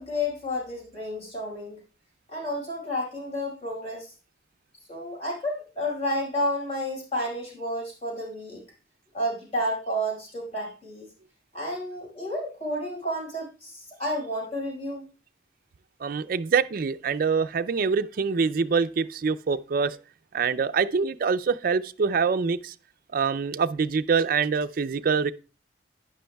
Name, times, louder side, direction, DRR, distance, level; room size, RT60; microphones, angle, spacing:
voice 1, 0.0-1.8 2.3-4.1 4.9-8.6 9.1-11.1 11.5-15.0, left 1 dB, 35° left, 4.9 m, -31 dB
voice 2, 16.0-20.0 20.3-22.7 23.1-25.3, right 5 dB, 55° right, 0.4 m, -25 dB
11.5 x 9.8 x 2.3 m
head